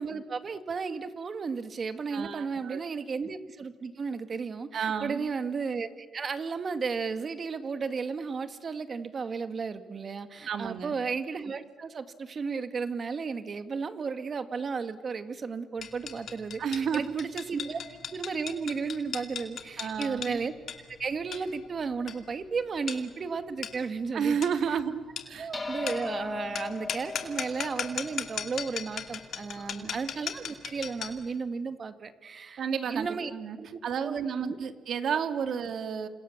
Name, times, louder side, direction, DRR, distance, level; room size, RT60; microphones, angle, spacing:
voice 1, 0.0-17.8 18.1-20.5 21.0-24.4 24.7-24.8 25.4-33.3 33.6-34.6, right 5 dB, 45° right, 9 dB, 2.0 m, -34 dB
voice 2, 2.1-2.8 4.7-5.3 10.5-10.9 16.6-17.2 19.8-20.4 24.1-25.5 29.6-30.0 32.6-33.6 33.8-36.1, right 7 dB, 65° right, 8 dB, 2.1 m, -31 dB
sound 1, 15.8-31.3, left 8 dB, 65° left, 2.6 m, -39 dB
sound 2, 25.5-30.2, left 3 dB, 20° left, 3.6 m, -39 dB
29.0 x 27.0 x 7.4 m, 1.5 s
cardioid pair, 90°, 0 cm